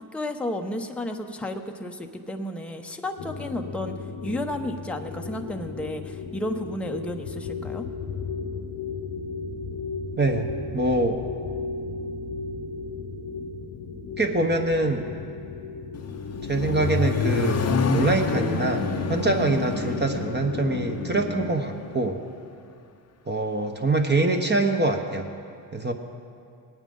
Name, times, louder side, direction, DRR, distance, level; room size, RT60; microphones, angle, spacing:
voice 1, 0.0-3.9 4.2-7.9, left 1 dB, 5° left, 4 dB, 0.8 m, -32 dB
sound 1, 3.2-21.5, left 4 dB, 60° left, 1.1 m, -34 dB
voice 2, 10.2-11.2 14.2-15.1 16.4-22.2 23.3-25.3 25.7-25.9, right 2 dB, 20° right, 3 dB, 1.1 m, -24 dB
Accelerating revving vroom, 15.9-22.0, left 5 dB, 35° left, 0.8 m, -28 dB
19.0 x 9.1 x 3.9 m, 2.5 s
supercardioid pair, 60°, 46 cm